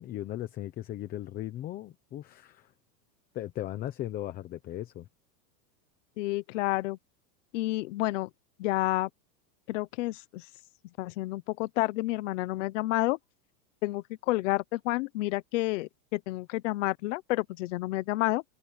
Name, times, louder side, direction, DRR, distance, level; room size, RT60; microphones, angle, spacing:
voice 1, 0.0-2.7 3.3-5.0, left 13 dB, 20° left, 0.8 m, -37 dB
voice 2, 6.2-7.0 7.5-8.3 8.6-9.1 9.7-10.4 11.0-13.2 13.8-18.4, left 19 dB, 50° left, 1.0 m, -30 dB
open air
supercardioid pair, 165°, 49 cm